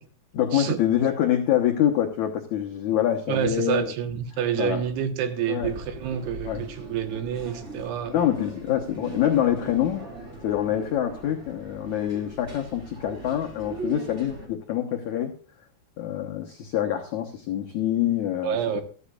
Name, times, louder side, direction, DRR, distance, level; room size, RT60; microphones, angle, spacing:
voice 1, 0.3-3.9 4.6-4.8 5.5-5.7 6.4-6.6 8.1-10.0 10.4-15.3 16.0-18.8, left 11 dB, 90° left, 3 dB, 1.6 m, -25 dB
voice 2, 3.3-8.2 18.4-18.8, right 9 dB, 75° right, 8 dB, 3.2 m, -28 dB
sound 1, 5.6-14.5, right 2 dB, 25° right, 1.8 m, -40 dB
14.0 x 13.5 x 2.4 m, 0.42 s
omnidirectional pair, 5.0 m